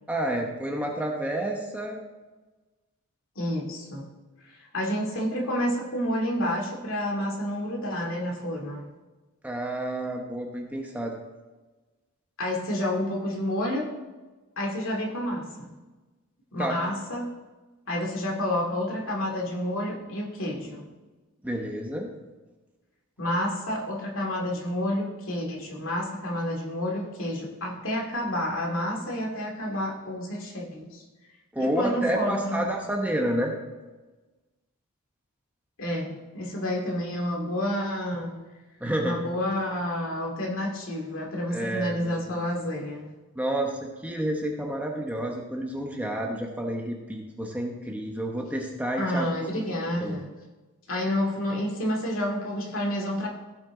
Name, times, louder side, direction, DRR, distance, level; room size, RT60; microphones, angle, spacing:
voice 1, 0.1-2.0 9.4-11.2 16.6-16.8 21.4-22.1 31.5-33.5 38.8-39.2 41.5-42.4 43.3-49.6 50.0-50.1, right 1 dB, 5° right, 1 dB, 0.9 m, -30 dB
voice 2, 3.4-4.1 4.4-8.9 12.4-13.9 14.6-15.7 16.5-17.3 17.9-20.8 23.2-31.0 31.6-32.6 35.8-38.3 39.0-43.1 49.0-50.3 50.9-53.3, left 1 dB, 65° left, -1 dB, 2.3 m, -29 dB
16.0 x 6.1 x 3.8 m, 1.2 s
head